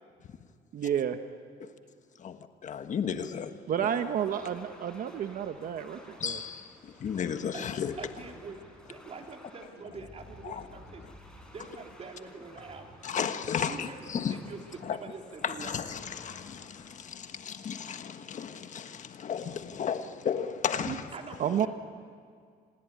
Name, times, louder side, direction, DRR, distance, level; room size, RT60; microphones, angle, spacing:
voice 1, 0.7-1.2 3.7-6.4 20.9-21.0 21.4-21.7, right 9 dB, 55° right, 8 dB, 1.1 m, -30 dB
voice 2, 2.2-3.6 6.2-7.9 10.4-10.7 13.0-14.4 14.8-15.0 15.4-21.1, left 7 dB, 45° left, 8 dB, 1.4 m, -34 dB
sound 1, 4.0-17.9, left 1 dB, 5° left, 6.4 m, -53 dB
voice 3, 8.0-8.6 8.8-11.0 11.3-13.0 13.6-15.7 21.1-21.7, right 4 dB, 40° right, 3 dB, 3.3 m, -45 dB
26.5 x 20.0 x 9.5 m, 2.1 s
cardioid pair, 110°, 17 cm